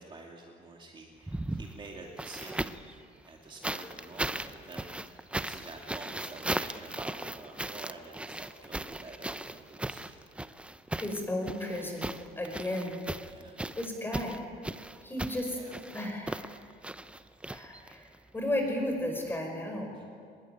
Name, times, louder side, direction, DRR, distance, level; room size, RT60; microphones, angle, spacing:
voice 1, 0.0-3.0 3.2-10.2 13.2-13.6 15.4-15.8 19.9-20.1, right 3 dB, 25° right, 0 dB, 2.7 m, -48 dB
sound 1, 1.2-2.9 3.6-18.1 19.3-19.4, right 1 dB, 5° right, 0.7 m, -37 dB
voice 2, 10.9-12.1 12.4-13.0 13.8-14.4 15.0-15.6 15.9-16.5 17.5-18.1 18.3-19.9, left 1 dB, 10° left, 2 dB, 5.5 m, -33 dB
24.0 x 20.5 x 9.5 m, 2.3 s
cardioid pair, 140°, 18 cm